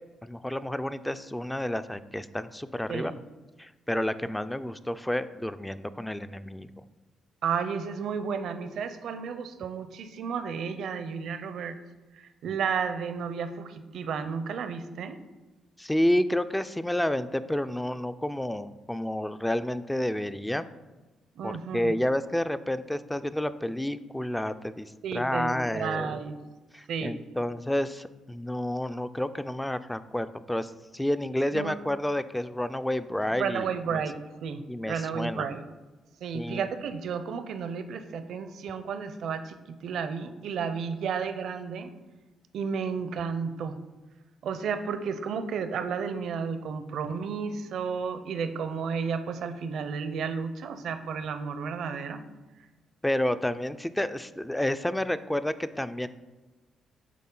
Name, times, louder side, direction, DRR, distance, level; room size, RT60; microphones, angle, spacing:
voice 1, 0.2-3.1 3.6-6.7 15.8-20.6 21.4-26.2 26.7-34.0 34.7-35.4 36.3-36.7 53.0-56.1, left 1 dB, 5° left, 12 dB, 0.3 m, -30 dB
voice 2, 7.4-11.8 12.1-15.2 21.4-21.9 25.0-26.4 26.9-27.1 31.5-31.7 33.3-34.2 34.4-35.6 36.2-41.9 42.5-43.7 44.4-52.2, right 6 dB, 70° right, 9 dB, 0.5 m, -32 dB
8.4 x 3.8 x 3.8 m, 1.2 s
cardioid pair, 90°, 0 cm